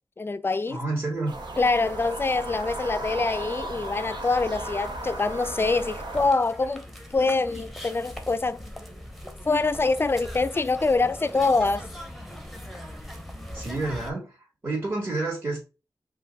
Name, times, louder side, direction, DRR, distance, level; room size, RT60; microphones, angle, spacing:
voice 1, 0.2-0.8 1.6-8.7 9.5-11.9, left 3 dB, 30° left, 0.3 m, -25 dB
voice 2, 0.7-1.3 13.5-14.4 14.6-15.6, right 2 dB, 35° right, 2.2 m, -29 dB
sound 1, 1.3-6.3, right 2 dB, 90° right, 1.1 m, -35 dB
sound 2, 2.1-14.1, equal, ahead, 0.9 m, -42 dB
5.0 x 2.5 x 3.8 m
wide cardioid pair, 95°, 8 cm